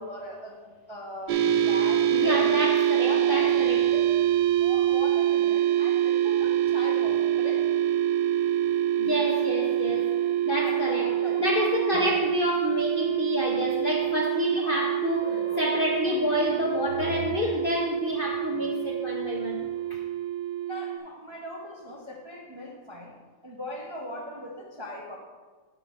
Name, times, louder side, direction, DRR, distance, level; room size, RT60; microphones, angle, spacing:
voice 1, 0.0-2.5 2.9-4.0 4.6-7.7 10.5-11.5 11.9-12.2 14.6-14.8 16.1-16.4 20.6-23.2 23.4-25.2, left 1 dB, 30° right, -2 dB, 0.5 m, -39 dB
sound 1, 1.3-21.0, right 11 dB, 70° right, 1.1 m, -25 dB
voice 2, 2.1-3.9 9.0-10.2 10.4-20.0, left 2 dB, 60° left, 0 dB, 0.5 m, -29 dB
7.0 x 5.6 x 5.2 m, 1.4 s
omnidirectional pair, 1.9 m